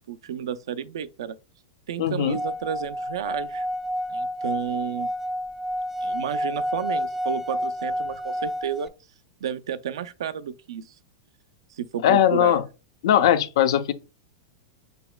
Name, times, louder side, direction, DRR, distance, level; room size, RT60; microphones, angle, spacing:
voice 1, 0.1-1.4 1.9-3.7 4.1-5.1 6.0-8.9 9.4-11.0 11.7-12.6, right 9 dB, 80° right, 0.4 m, -32 dB
voice 2, 2.0-2.4 12.0-12.6 13.0-13.9, left 10 dB, 70° left, 0.6 m, -19 dB
Singing / Glass, 2.3-8.9, equal, 10° right, 0.3 m, -29 dB
5.7 x 4.0 x 2.2 m
hypercardioid pair, 125°, 3 cm